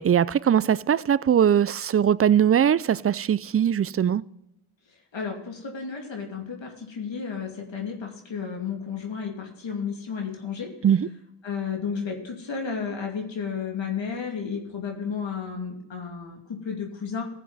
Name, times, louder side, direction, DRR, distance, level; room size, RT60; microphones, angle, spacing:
voice 1, 0.0-4.2 10.8-11.1, right 9 dB, 30° right, 0.4 m, -21 dB
voice 2, 5.1-10.7 11.4-17.3, left 6 dB, 60° left, 2.6 m, -32 dB
15.0 x 7.3 x 4.1 m
cardioid pair, 70°, 49 cm